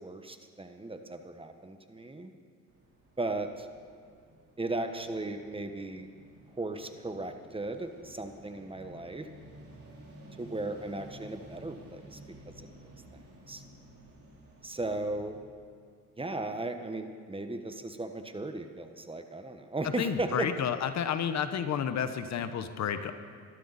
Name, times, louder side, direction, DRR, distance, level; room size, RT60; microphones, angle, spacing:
voice 1, 0.0-2.3 3.2-3.7 4.6-6.1 6.6-9.3 10.4-12.2 12.6-12.7 13.1-13.2 13.5-13.6 14.6-15.4 16.2-20.5, right 2 dB, 20° right, 7 dB, 1.3 m, -36 dB
sound 1, 2.7-15.4, right 1 dB, 50° right, 3.9 m, -53 dB
voice 2, 20.0-23.1, left 8 dB, 65° left, 10 dB, 1.1 m, -31 dB
22.0 x 13.0 x 4.2 m, 2.3 s
cardioid pair, 90°, 30 cm